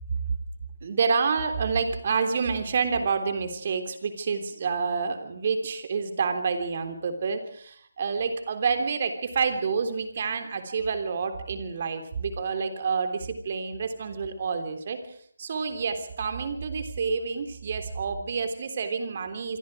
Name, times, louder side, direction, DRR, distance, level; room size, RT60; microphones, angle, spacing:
voice 1, 0.8-15.0 15.4-19.6, right 5 dB, 40° right, 8 dB, 3.5 m, -28 dB
27.5 x 24.0 x 4.9 m, 0.63 s
figure-of-eight pair, 150°, 0 cm